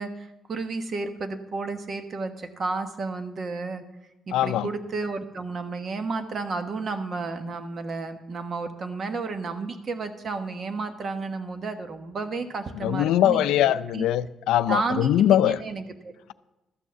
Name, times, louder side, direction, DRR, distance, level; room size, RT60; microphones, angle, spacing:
voice 1, 0.0-3.8 4.3-14.1 14.7-16.1, right 3 dB, 45° right, 1.2 m, -32 dB
voice 2, 4.3-4.7 12.8-15.6, left 12 dB, 90° left, 0.4 m, -22 dB
13.0 x 6.3 x 6.8 m
cardioid pair, 90°, 0 cm